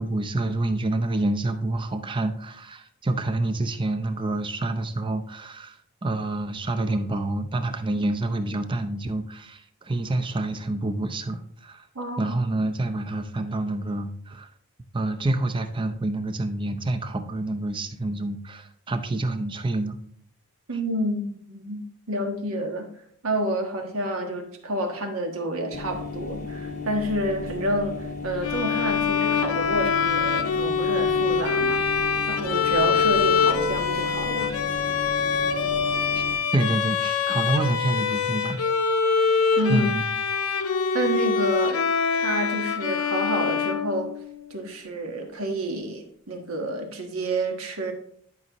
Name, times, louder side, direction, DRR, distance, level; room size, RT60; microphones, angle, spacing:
voice 1, 0.0-5.8 6.0-11.9 12.2-14.5 14.9-20.0 36.1-36.2 36.5-38.6 39.7-40.0, right 2 dB, 20° right, 8 dB, 0.6 m, -27 dB
voice 2, 11.9-12.3 20.7-22.9 23.2-34.5 39.6-39.9 40.9-41.8 42.2-44.1 44.5-47.9, right 1 dB, 75° right, 3 dB, 1.4 m, -29 dB
sound 1, 25.7-36.4, left 3 dB, 35° left, 0.7 m, -34 dB
Bowed string instrument, 28.4-44.5, left 5 dB, 90° left, 0.8 m, -24 dB
11.0 x 5.4 x 3.0 m, 0.64 s
head